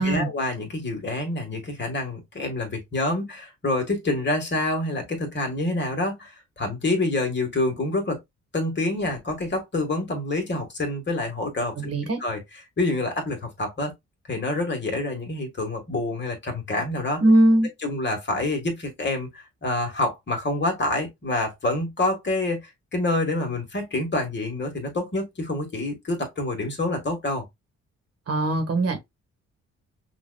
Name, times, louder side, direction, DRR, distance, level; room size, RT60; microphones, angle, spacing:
voice 1, 0.0-8.2 8.5-11.9 12.2-12.4 12.8-13.9 14.3-17.2 17.8-27.4, left 2 dB, 40° left, 1.6 m, -27 dB
voice 2, 11.8-12.2 17.2-17.7 28.3-29.0, right 1 dB, 55° right, 1.4 m, -20 dB
5.5 x 2.5 x 2.2 m
cardioid pair, 80°, 29 cm